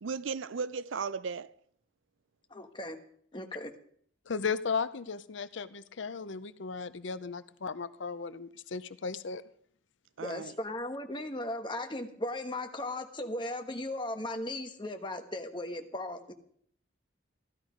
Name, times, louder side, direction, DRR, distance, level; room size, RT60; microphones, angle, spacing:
voice 1, 0.0-1.5 10.2-10.5, right 5 dB, 80° right, 0.5 m, -36 dB
voice 2, 2.5-3.0 3.3-3.7 10.2-16.3, left 1 dB, 25° left, 1.3 m, -37 dB
voice 3, 4.3-9.4, left 5 dB, 70° left, 0.6 m, -35 dB
15.5 x 12.5 x 5.1 m
head